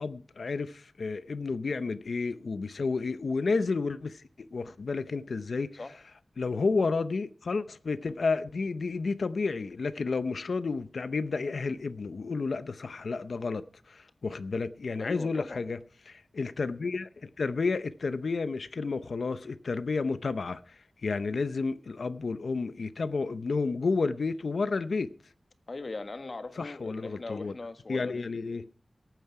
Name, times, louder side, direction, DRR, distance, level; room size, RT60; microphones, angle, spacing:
voice 1, 0.0-5.8 6.4-15.8 16.1-25.1 26.6-27.5 27.9-28.6, left 4 dB, 80° left, 0.7 m, -31 dB
voice 2, 15.0-15.6 25.7-28.3, left 3 dB, 55° left, 1.5 m, -40 dB
18.5 x 9.2 x 4.8 m
wide cardioid pair, 80°, 0 cm